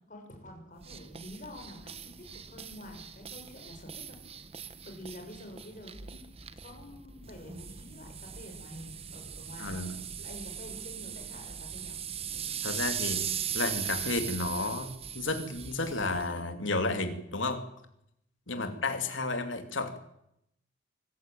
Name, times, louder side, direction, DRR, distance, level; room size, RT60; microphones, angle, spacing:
voice 1, 0.1-4.2 4.6-6.2 6.6-9.9 10.2-12.0 18.5-18.8, left 1 dB, 45° left, 3 dB, 6.3 m, -48 dB
sound 1, 0.8-16.3, right 8 dB, 30° right, 1.1 m, -39 dB
voice 2, 9.6-10.0 12.6-13.3 13.5-17.6 18.5-20.0, left 3 dB, 80° left, 7 dB, 2.9 m, -32 dB
24.5 x 14.5 x 9.2 m, 0.79 s
head